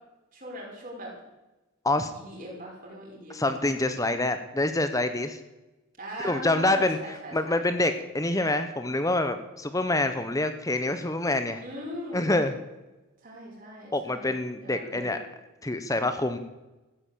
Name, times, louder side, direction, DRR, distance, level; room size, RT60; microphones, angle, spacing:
voice 1, 0.3-1.1 2.1-3.5 6.0-7.6 11.6-12.3 13.2-14.3 14.6-15.1, equal, 40° right, -3 dB, 6.1 m, -40 dB
voice 2, 3.3-5.4 6.2-11.6 12.1-12.5 13.9-15.2 15.6-16.4, left 2 dB, 15° left, 10 dB, 0.8 m, -26 dB
15.0 x 9.9 x 8.5 m, 1.0 s
head